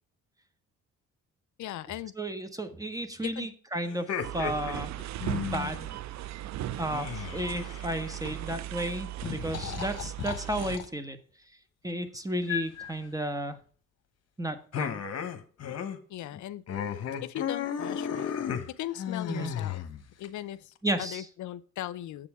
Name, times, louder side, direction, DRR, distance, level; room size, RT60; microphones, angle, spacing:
voice 1, 1.6-2.1 3.2-3.5 16.1-16.6 17.2-18.3 18.7-19.8 20.2-22.3, left 13 dB, 70° left, 15 dB, 0.6 m, -38 dB
voice 2, 2.2-4.9 5.3-5.9 6.8-11.2 11.8-13.6 14.4-15.0 19.3-19.5 20.8-21.2, right 1 dB, 10° right, 9 dB, 1.2 m, -33 dB
sound 1, 3.9-5.9 6.9-8.3 9.2-10.9 12.5-12.9 14.7-16.0 16.3-16.4 16.7-20.3, left 8 dB, 55° left, 1.1 m, -34 dB
sound 2, 4.2-10.8, right 13 dB, 65° right, 0.5 m, -37 dB
7.5 x 6.9 x 4.8 m, 0.42 s
cardioid pair, 90°, 30 cm